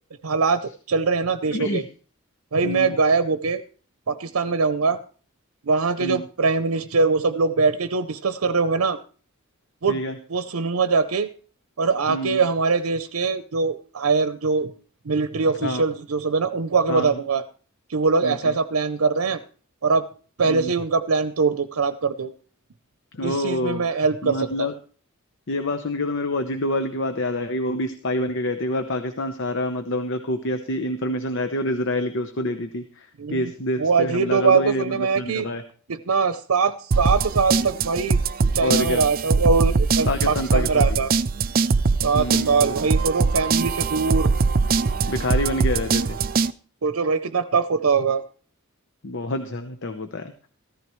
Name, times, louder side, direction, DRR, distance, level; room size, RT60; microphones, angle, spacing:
voice 1, 0.2-1.8 2.5-3.6 4.1-5.0 5.6-9.0 9.8-10.0 10.3-11.3 11.8-14.7 15.0-17.4 17.9-19.4 19.8-20.0 20.4-22.3 23.2-24.7 33.2-33.5 33.8-35.5 35.9-38.2 38.5-41.1 42.0-44.3 46.8-48.2, right 4 dB, 85° right, 11 dB, 0.7 m, -22 dB
voice 2, 1.5-1.8 2.6-3.0 6.0-6.2 9.9-10.2 12.1-12.4 15.6-15.8 16.9-17.2 18.2-18.5 20.4-20.7 23.1-24.7 25.5-35.6 38.6-39.0 40.1-41.0 42.1-42.7 45.1-46.2 49.0-50.3, left 1 dB, 60° left, 7 dB, 0.9 m, -27 dB
sound 1, 36.9-46.5, right 4 dB, 45° right, 0.5 m, -22 dB
14.5 x 14.0 x 3.1 m, 0.41 s
head